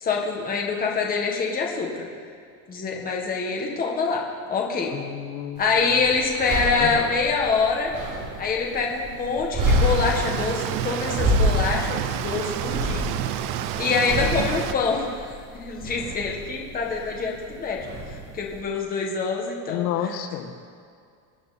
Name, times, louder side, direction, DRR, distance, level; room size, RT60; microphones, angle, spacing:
voice 1, 0.0-2.1 2.7-4.2 4.5-4.9 5.6-7.9 8.4-13.0 13.8-15.3 15.5-17.8 18.3-19.9, left 4 dB, 20° left, -1 dB, 1.5 m, -25 dB
voice 2, 4.9-6.0 6.8-7.1 19.7-20.5, left 10 dB, 90° left, 5 dB, 1.7 m, -31 dB
sound 1, 5.6-18.6, equal, 35° right, 3.1 m, -29 dB
sound 2, 9.7-14.7, right 10 dB, 55° right, 0.8 m, -29 dB
24.0 x 9.1 x 4.2 m, 2.3 s
cardioid pair, 175°, 49 cm